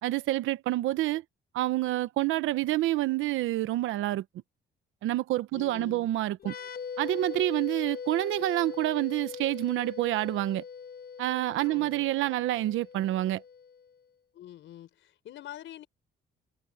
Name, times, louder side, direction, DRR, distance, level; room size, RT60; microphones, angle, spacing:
voice 1, 0.0-1.2 1.5-4.2 5.0-6.5 7.0-10.6 11.2-13.4, right 15 dB, 90° right, 0.9 m, -28 dB
voice 2, 5.5-6.1 11.6-12.1 14.3-15.9, left 12 dB, 75° left, 4.3 m, -46 dB
sound 1, 6.4-13.9, left 6 dB, 50° left, 1.3 m, -41 dB
cardioid pair, 90°, 20 cm